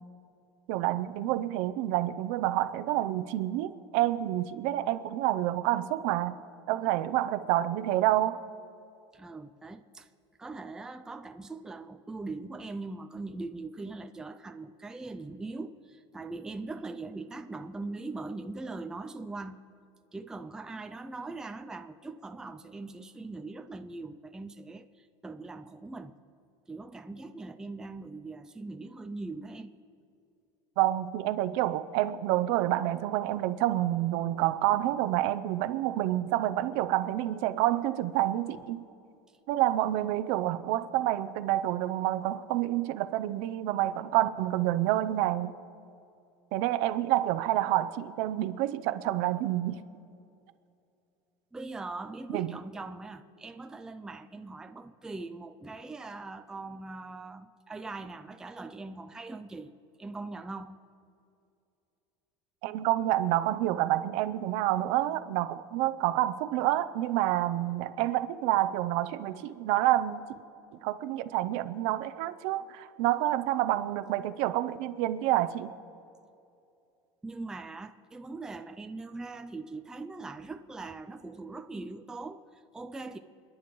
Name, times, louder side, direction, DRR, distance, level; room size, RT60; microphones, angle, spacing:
voice 1, 0.7-6.4 6.7-8.4 30.8-38.8 39.5-45.5 46.5-49.8 52.3-52.5 62.6-70.3 70.8-75.7, right 14 dB, 65° right, 0.6 m, -28 dB
voice 2, 9.1-10.1 10.4-19.7 20.1-26.2 26.7-29.7 51.5-60.8 77.2-83.2, right 3 dB, 5° right, 0.3 m, -41 dB
29.5 x 10.0 x 3.1 m
cardioid pair, 145°, 13 cm